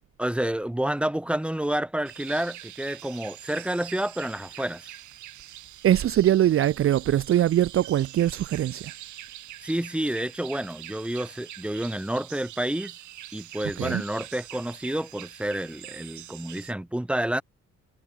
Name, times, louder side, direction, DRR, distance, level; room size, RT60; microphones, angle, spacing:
voice 1, 0.2-4.9 9.6-12.9 13.3-17.4, right 1 dB, 5° right, 1.4 m, -29 dB
sound 1, 2.0-16.7, right 13 dB, 75° right, 1.4 m, -44 dB
voice 2, 5.8-8.9 13.8-14.0, right 12 dB, 45° right, 0.5 m, -22 dB
cardioid pair, 90°, 30 cm